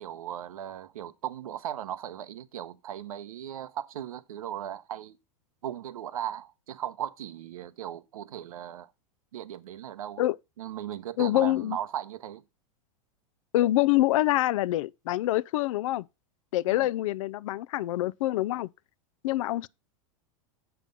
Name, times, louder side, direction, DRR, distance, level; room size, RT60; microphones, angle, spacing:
voice 1, 0.0-5.2 5.6-8.9 9.3-10.2 10.6-12.4 16.7-16.9, right 11 dB, 90° right, 0.9 m, -37 dB
voice 2, 11.2-11.8 13.5-16.0 16.5-18.7 19.2-19.7, left 16 dB, 70° left, 0.4 m, -25 dB
7.6 x 6.0 x 5.3 m
supercardioid pair, 130°, 18 cm